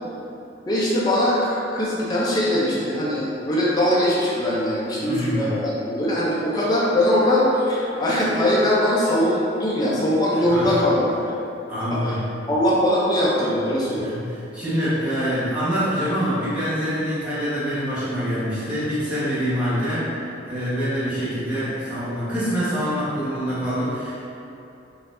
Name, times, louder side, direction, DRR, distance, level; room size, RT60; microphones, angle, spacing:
voice 1, 0.7-11.3 12.0-12.2 12.5-14.1, left 1 dB, 20° left, -7 dB, 0.5 m, -21 dB
voice 2, 5.0-5.6 10.5-10.7 11.7-12.3 14.0-20.1 20.5-24.3, equal, 10° right, -13 dB, 1.2 m, -25 dB
4.0 x 2.7 x 2.6 m, 2.8 s
head